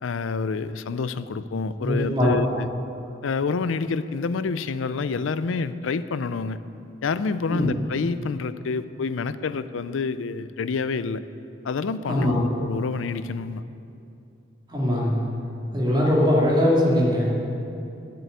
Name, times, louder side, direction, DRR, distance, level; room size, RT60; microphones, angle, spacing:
voice 1, 0.0-2.7 3.2-6.6 7.0-11.2 11.6-13.6, left 4 dB, 85° left, 14 dB, 0.4 m, -28 dB
voice 2, 1.8-2.6 7.5-7.7 12.1-12.5 14.7-15.2 15.7-17.3, left 1 dB, 25° right, -5 dB, 2.4 m, -21 dB
10.5 x 7.7 x 8.2 m, 2.7 s
head